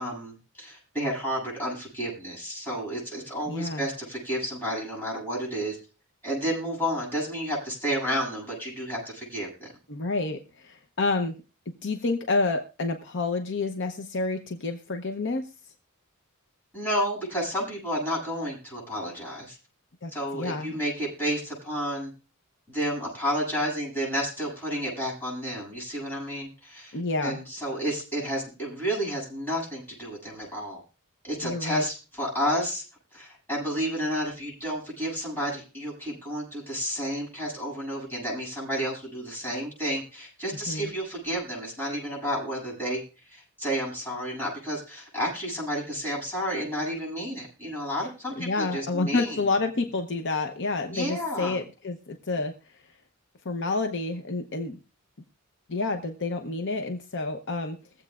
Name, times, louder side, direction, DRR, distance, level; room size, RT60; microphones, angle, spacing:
voice 1, 0.0-5.8 6.2-9.7 16.7-19.6 20.1-22.1 22.7-30.8 31.2-32.8 33.1-49.4 50.9-51.6, equal, 10° left, -5 dB, 7.8 m, -31 dB
voice 2, 3.5-3.9 9.9-11.4 11.8-15.5 20.0-20.8 26.9-27.4 31.4-31.8 40.7-40.9 48.4-52.5 53.4-54.8 55.7-57.8, left 3 dB, 55° left, 6 dB, 0.8 m, -29 dB
23.0 x 7.9 x 2.4 m, 0.33 s
head